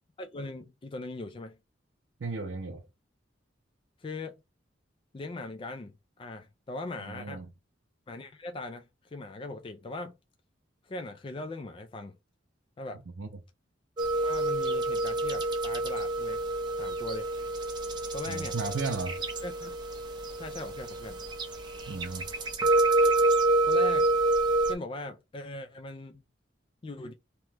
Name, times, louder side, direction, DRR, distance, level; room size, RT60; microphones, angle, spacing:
voice 1, 0.2-1.6 4.0-4.4 5.1-7.4 8.1-10.1 10.8-12.2 12.8-13.0 14.2-16.4 16.8-17.3 18.1-18.6 19.4-19.7 20.4-21.2 23.0-23.1 23.7-24.1 24.6-26.2 26.8-27.1, left 2 dB, 30° left, 0.3 m, -40 dB
voice 2, 2.2-2.9 7.1-7.5 13.2-13.3 18.2-19.2 21.9-22.3, right 3 dB, 80° right, 0.5 m, -34 dB
sound 1, 14.0-24.7, right 2 dB, 25° right, 0.6 m, -28 dB
2.9 x 2.2 x 3.2 m
head